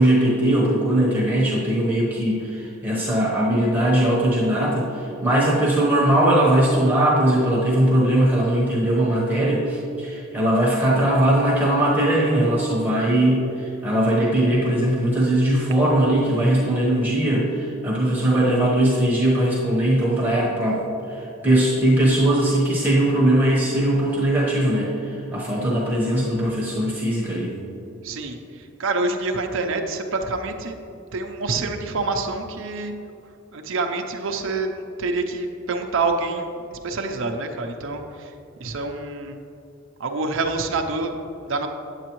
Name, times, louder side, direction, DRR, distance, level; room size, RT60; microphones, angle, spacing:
voice 1, 0.0-27.5, right 1 dB, 10° right, -5 dB, 1.1 m, -20 dB
voice 2, 28.0-30.8 31.1-32.9 33.5-36.6 36.8-38.3 38.6-39.4 40.0-41.1 41.5-41.7, right 3 dB, 65° right, 4 dB, 0.6 m, -27 dB
8.9 x 8.3 x 3.0 m, 2.8 s
head